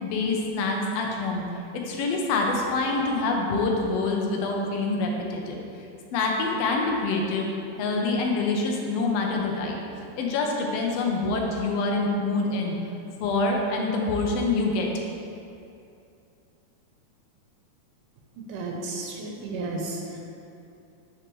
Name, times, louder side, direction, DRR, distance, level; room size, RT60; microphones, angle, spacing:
voice 1, 0.0-1.4 1.9-5.6 6.1-9.8 10.2-12.8 13.2-14.9, left 3 dB, 80° left, 0 dB, 1.4 m, -26 dB
voice 2, 18.4-20.2, right 2 dB, 85° right, 0 dB, 2.3 m, -33 dB
9.8 x 4.9 x 3.1 m, 2.6 s
omnidirectional pair, 3.7 m